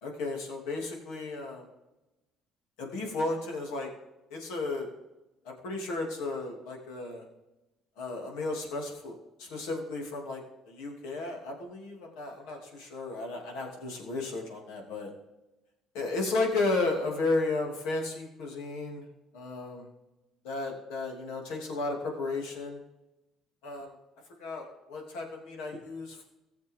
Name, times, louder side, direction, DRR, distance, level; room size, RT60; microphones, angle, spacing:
voice 1, 0.0-1.7 2.8-3.9 4.3-4.9 5.4-7.2 8.0-10.4 10.7-15.1 15.9-19.1 19.3-19.9 20.4-22.8 23.6-23.9 24.4-26.2, left 3 dB, 90° left, 0 dB, 2.9 m, -33 dB
16.0 x 7.2 x 3.7 m, 1.0 s
cardioid pair, 105°, 0 cm